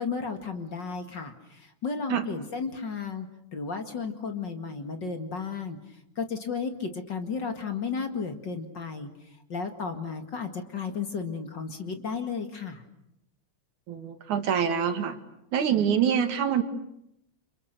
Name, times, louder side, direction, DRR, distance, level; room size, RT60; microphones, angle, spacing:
voice 1, 0.0-5.8 6.2-9.1 9.5-12.8, left 5 dB, 40° left, 6 dB, 2.4 m, -33 dB
voice 2, 13.9-15.2 15.5-16.6, right 8 dB, 80° right, 8 dB, 3.4 m, -25 dB
30.0 x 28.0 x 6.8 m, 0.80 s
omnidirectional pair, 3.4 m